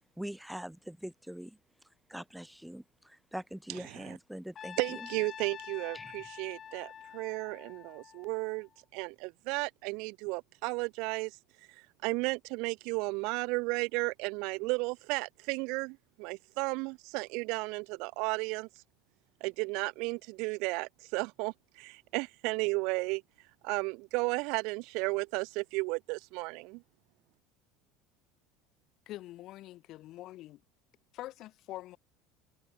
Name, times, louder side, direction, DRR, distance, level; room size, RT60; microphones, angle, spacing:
voice 1, 0.2-1.6 2.1-5.1 5.9-6.3, right 1 dB, ahead, 0.7 m, -43 dB
Trumpet, 4.6-8.8, left 8 dB, 30° left, 5.5 m, -47 dB
voice 2, 4.8-11.3 12.0-18.7 19.4-23.2 23.6-26.8, right 28 dB, 65° right, 0.5 m, -34 dB
voice 3, 29.1-30.6 31.1-32.0, left 15 dB, 50° left, 1.9 m, -45 dB
cardioid pair, 145°, 0 cm